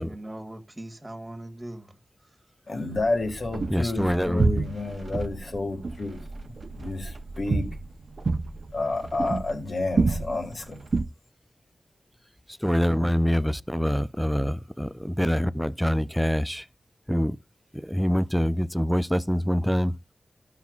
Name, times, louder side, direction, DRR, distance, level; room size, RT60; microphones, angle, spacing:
voice 1, 0.0-2.0 2.8-3.0, right 1 dB, 25° right, 1.6 m, -40 dB
voice 2, 2.7-6.2 6.7-7.7 8.7-10.8, left 2 dB, 60° left, 1.8 m, -30 dB
sound 1, 2.9-11.0, right 3 dB, 60° right, 0.6 m, -29 dB
voice 3, 3.7-4.5 12.6-16.7 17.1-17.4 17.7-19.9, equal, ahead, 0.4 m, -25 dB
14.0 x 5.8 x 2.4 m
wide cardioid pair, 95°, 0 cm